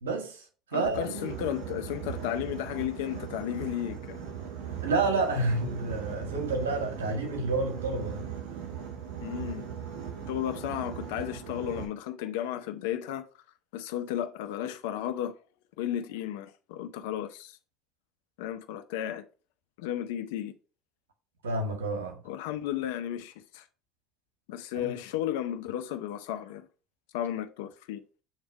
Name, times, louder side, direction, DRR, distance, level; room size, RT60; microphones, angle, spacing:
voice 1, 0.0-0.4 0.7-1.3 4.8-8.2 21.4-22.2 24.7-24.9, right 3 dB, 85° right, 1.7 m, -29 dB
voice 2, 0.7-4.2 9.2-9.6 10.3-13.2 13.7-15.3 15.8-17.6 18.4-19.2 19.8-20.5 22.2-23.6 24.5-26.7 27.1-28.0, left 11 dB, 75° left, 0.6 m, -34 dB
Boat Water vehicle, 0.8-11.8, right 8 dB, 70° right, 1.7 m, -39 dB
7.4 x 3.4 x 4.7 m
hypercardioid pair, 70°, 0 cm